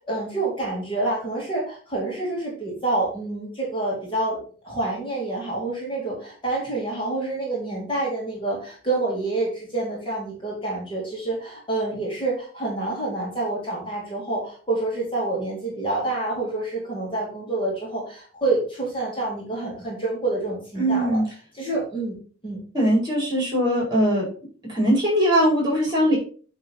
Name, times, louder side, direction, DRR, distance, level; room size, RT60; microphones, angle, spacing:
voice 1, 0.1-4.4 4.6-21.2 21.5-22.2 22.4-22.6, right 2 dB, 25° left, -4 dB, 2.5 m, -27 dB
voice 2, 20.8-21.2 22.7-24.2 24.7-26.2, equal, 20° right, -3 dB, 4.2 m, -20 dB
8.5 x 3.7 x 5.4 m, 0.40 s
head